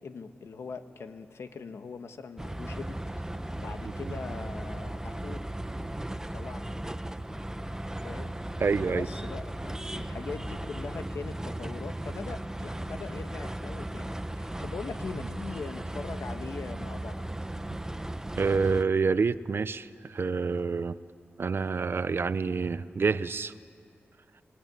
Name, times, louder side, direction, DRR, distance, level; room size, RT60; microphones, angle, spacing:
voice 1, 0.0-3.2 3.5-5.4 6.3-6.7 8.0-8.3 8.9-17.3, left 5 dB, 85° left, 8 dB, 1.3 m, -41 dB
sound 1, 2.4-18.8, right 1 dB, 10° right, 0.9 m, -36 dB
voice 2, 8.6-9.1 18.4-21.0 21.4-23.5, right 5 dB, 60° right, 15 dB, 0.7 m, -27 dB
25.5 x 21.0 x 9.4 m, 2.4 s
cardioid pair, 70°, 4 cm